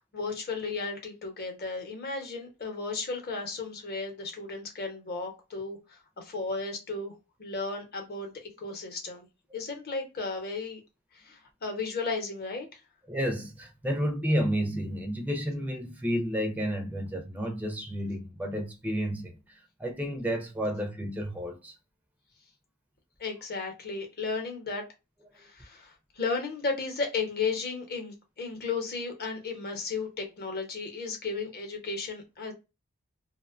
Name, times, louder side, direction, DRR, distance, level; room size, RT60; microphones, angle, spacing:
voice 1, 0.1-7.1 7.4-8.3 8.6-9.3 9.5-10.8 11.1-12.8 23.2-24.8 25.4-32.5, left 4 dB, 45° left, 0.8 m, -34 dB
voice 2, 13.1-21.8, equal, 5° right, 0.4 m, -31 dB
2.5 x 2.2 x 2.4 m
head